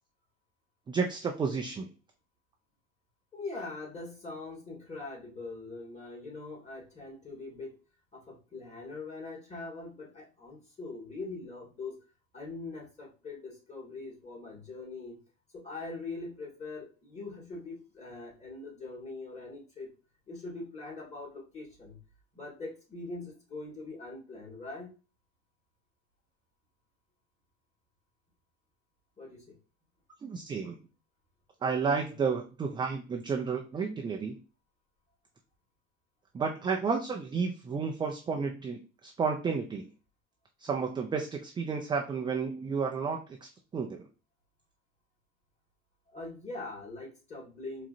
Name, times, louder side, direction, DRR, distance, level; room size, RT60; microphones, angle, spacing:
voice 1, 0.9-1.9 30.2-30.8 31.6-34.4 36.3-39.9 40.6-44.0, right 5 dB, 15° right, 3 dB, 0.3 m, -32 dB
voice 2, 3.3-7.8 8.1-12.0 12.3-15.2 15.5-19.9 20.3-22.0 22.3-24.9 29.2-29.4 46.1-47.9, left 3 dB, 15° left, -2 dB, 2.1 m, -42 dB
4.7 x 2.8 x 2.6 m, 0.34 s
hypercardioid pair, 80°, 40 cm